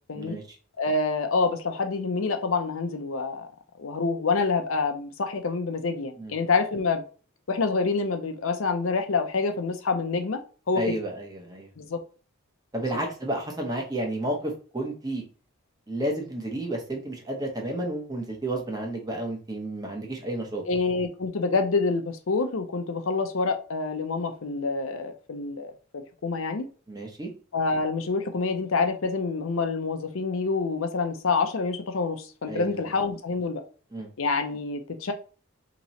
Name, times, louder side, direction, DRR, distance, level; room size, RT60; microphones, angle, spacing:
voice 1, 0.1-0.6 6.2-6.3 10.7-11.7 12.7-15.2 15.9-20.6 26.9-27.3 32.5-32.9 33.9-34.1, right 1 dB, 20° right, 0.9 m, -31 dB
voice 2, 0.8-3.5 3.8-7.0 7.5-10.4 10.7-10.9 11.8-12.0 20.7-26.7 27.5-33.6 34.2-35.1, left 4 dB, 70° left, 0.6 m, -27 dB
3.0 x 3.0 x 4.0 m
head